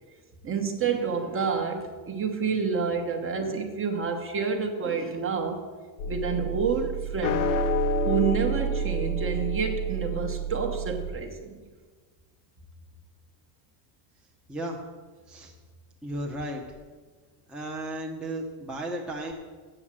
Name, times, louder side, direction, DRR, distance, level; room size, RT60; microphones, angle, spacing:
voice 1, 0.4-5.6 6.1-7.5 8.0-11.6, right 5 dB, 25° right, 4 dB, 1.2 m, -29 dB
sound 1, 6.0-11.1, right 1 dB, 70° left, 1.0 m, -28 dB
voice 2, 14.5-14.8 15.3-15.5 16.0-16.6 17.5-19.3, right 1 dB, ahead, -2 dB, 1.0 m, -34 dB
8.0 x 7.3 x 7.5 m, 1.4 s
cardioid pair, 135°, 49 cm